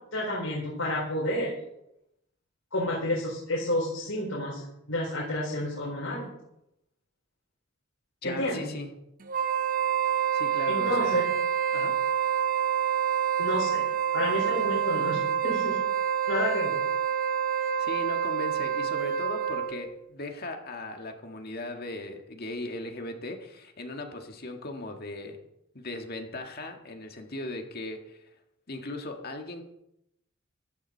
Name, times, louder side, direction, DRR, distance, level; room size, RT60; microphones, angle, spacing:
voice 1, 0.1-1.5 2.7-6.3 8.2-8.6 10.7-11.3 13.4-13.8 14.1-15.8 16.3-16.7, left 1 dB, 90° left, -5 dB, 4.5 m, -30 dB
voice 2, 8.2-8.9 10.3-11.3 11.7-12.2 17.8-25.4 25.7-28.3 28.7-29.6, left 2 dB, 50° left, 4 dB, 1.8 m, -38 dB
Wind instrument woodwind instrument, 9.3-19.9, right 9 dB, 45° right, 0.9 m, -27 dB
15.0 x 12.5 x 4.6 m, 0.83 s
head